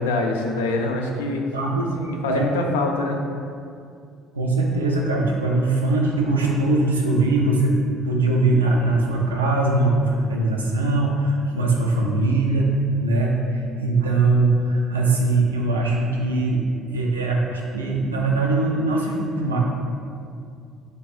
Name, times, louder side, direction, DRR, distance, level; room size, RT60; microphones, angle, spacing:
voice 1, 0.0-1.4 2.0-3.2, left 2 dB, 75° left, 2 dB, 0.3 m, -24 dB
voice 2, 1.5-1.9 2.3-2.5 4.3-7.8 8.0-12.7 13.0-16.6 16.9-19.6, right 2 dB, 80° right, -1 dB, 0.4 m, -21 dB
3.3 x 2.4 x 4.1 m, 2.3 s
figure-of-eight pair, 55°, 0 cm